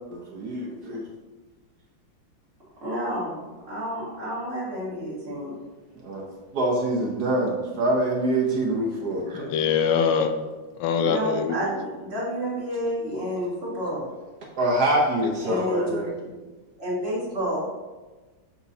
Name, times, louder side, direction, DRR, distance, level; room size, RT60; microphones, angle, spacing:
voice 1, 0.1-1.0 5.9-6.3 6.5-9.5 14.6-16.1, right 1 dB, 60° right, -2 dB, 1.3 m, -25 dB
voice 2, 2.8-5.6 11.0-14.1 15.4-16.1 16.8-17.6, equal, 30° right, -7 dB, 2.0 m, -30 dB
voice 3, 9.4-10.3 10.8-11.5, left 6 dB, 80° left, 8 dB, 1.4 m, -23 dB
7.0 x 5.8 x 2.8 m, 1.2 s
omnidirectional pair, 2.2 m